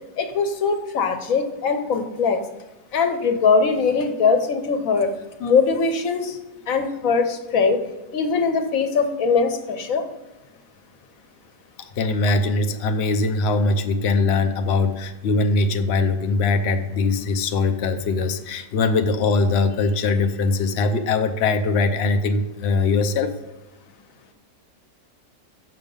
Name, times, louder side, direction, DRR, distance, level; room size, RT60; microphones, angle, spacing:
voice 1, 0.2-2.4 2.9-5.1 5.4-6.4 6.7-7.8 8.1-10.0, left 5 dB, 60° left, 7 dB, 1.1 m, -21 dB
voice 2, 12.0-23.3, left 3 dB, 80° left, 7 dB, 0.5 m, -21 dB
6.7 x 6.0 x 5.3 m, 1.1 s
omnidirectional pair, 1.9 m